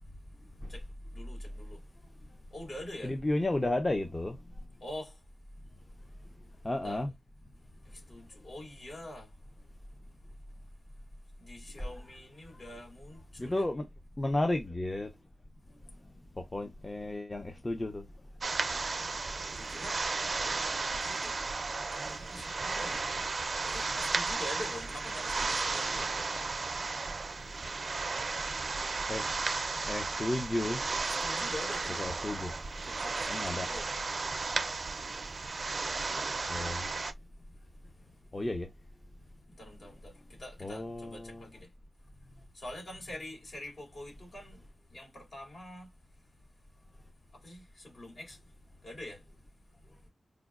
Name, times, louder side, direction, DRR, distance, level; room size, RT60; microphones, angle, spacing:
voice 1, 1.1-1.8 2.5-3.2 4.8-5.2 6.8-7.0 7.9-9.3 11.4-13.7 19.5-20.0 20.9-21.3 21.9-23.2 23.6-26.1 31.0-32.1 32.8-33.9 39.6-41.7 42.5-44.7 44.9-45.9 47.3-48.4 48.8-49.2, left 1 dB, 60° left, 2.4 m, -45 dB
voice 2, 3.0-4.4 6.6-7.1 13.4-13.9 14.2-15.1 16.4-18.1 29.1-30.8 32.0-32.5 33.3-33.7 36.5-36.9 38.3-38.7 40.6-41.4, left 1 dB, 25° left, 0.6 m, -33 dB
sound 1, 18.4-37.1, right 3 dB, 55° right, 0.4 m, -34 dB
4.9 x 2.1 x 2.4 m
wide cardioid pair, 75°, 0 cm